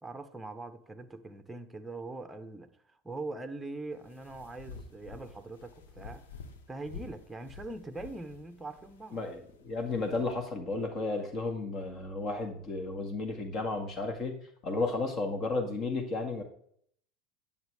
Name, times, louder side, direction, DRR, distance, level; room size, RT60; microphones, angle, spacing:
voice 1, 0.0-6.2 6.7-9.2, right 2 dB, 10° right, 0.9 m, -42 dB
sound 1, 3.9-10.3, left 4 dB, 75° left, 1.0 m, -50 dB
voice 2, 9.1-14.4 14.6-16.4, left 3 dB, 40° left, 1.9 m, -33 dB
10.5 x 7.1 x 3.5 m
figure-of-eight pair, 80°, 0 cm